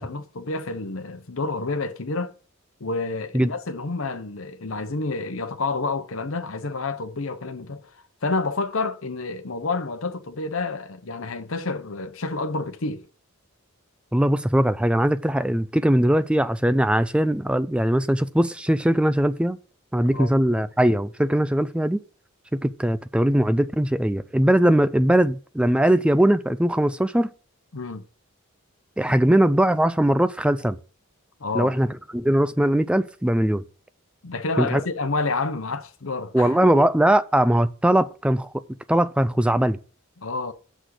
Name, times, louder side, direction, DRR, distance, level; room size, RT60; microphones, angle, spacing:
voice 1, 0.0-2.3 2.8-7.9 8.2-13.1 20.1-20.3 27.7-28.0 31.4-31.7 34.2-36.8 40.2-40.5, left 3 dB, 70° left, 0.9 m, -29 dB
voice 2, 14.1-19.6 19.9-22.0 22.6-27.3 29.0-30.8 31.5-31.9 32.1-33.6 34.6-34.8 36.3-38.6 38.9-39.8, right 1 dB, 5° right, 0.3 m, -20 dB
6.3 x 6.1 x 6.5 m
head